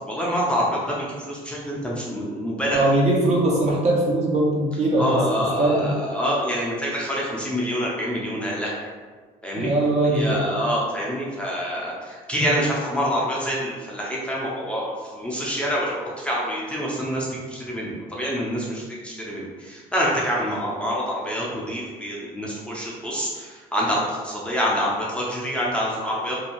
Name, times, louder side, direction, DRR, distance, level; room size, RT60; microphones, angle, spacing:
voice 1, 0.1-3.0 5.0-8.9 9.4-9.7 10.0-26.4, equal, 5° left, -6 dB, 0.5 m, -26 dB
voice 2, 2.7-5.2 5.6-5.9 9.5-10.5, right 2 dB, 40° right, -3 dB, 0.7 m, -21 dB
2.6 x 2.3 x 2.9 m, 1.5 s
cardioid pair, 110°, 17 cm